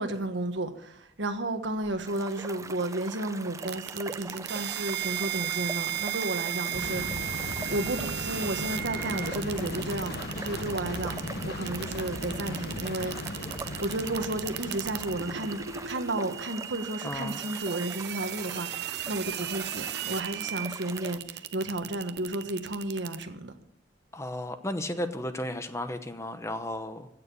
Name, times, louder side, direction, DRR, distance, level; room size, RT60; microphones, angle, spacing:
voice 1, 0.0-7.4 7.7-23.5, right 1 dB, 75° right, 1.4 m, -33 dB
sound 1, 2.1-21.2, right 3 dB, 15° right, 0.4 m, -43 dB
sound 2, 3.6-23.2, right 11 dB, 60° right, 0.7 m, -36 dB
sound 3, 6.7-15.9, left 2 dB, 55° left, 1.1 m, -37 dB
voice 2, 17.0-17.4 24.1-27.1, left 1 dB, 15° left, 0.9 m, -34 dB
16.0 x 6.8 x 6.9 m
head